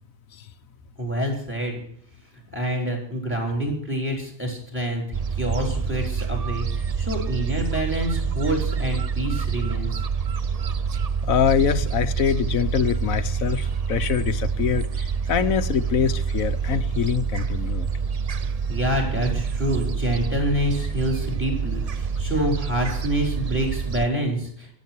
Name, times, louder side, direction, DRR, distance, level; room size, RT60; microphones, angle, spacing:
voice 1, 1.0-1.8 2.5-5.0 5.4-9.9 18.7-24.7, equal, 10° right, 2 dB, 4.7 m, -27 dB
Gull seagull, 5.1-24.1, right 6 dB, 50° right, 0.4 m, -27 dB
voice 2, 11.2-17.9, left 8 dB, 80° left, 12 dB, 1.3 m, -24 dB
24.5 x 8.5 x 4.5 m, 0.63 s
omnidirectional pair, 1.4 m